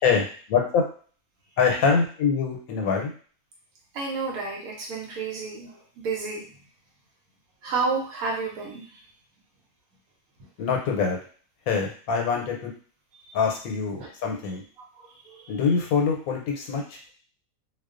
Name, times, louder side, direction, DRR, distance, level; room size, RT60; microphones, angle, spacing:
voice 1, 0.0-0.8 1.6-3.1 10.6-11.2 11.7-12.7 13.3-14.6 15.5-17.0, left 5 dB, 90° left, 1 dB, 1.0 m, -24 dB
voice 2, 3.9-6.5 7.6-8.9 13.2-13.3 14.0-14.1 14.9-15.5, right 4 dB, 85° right, -1 dB, 1.0 m, -31 dB
2.3 x 2.2 x 2.4 m, 0.42 s
omnidirectional pair, 1.5 m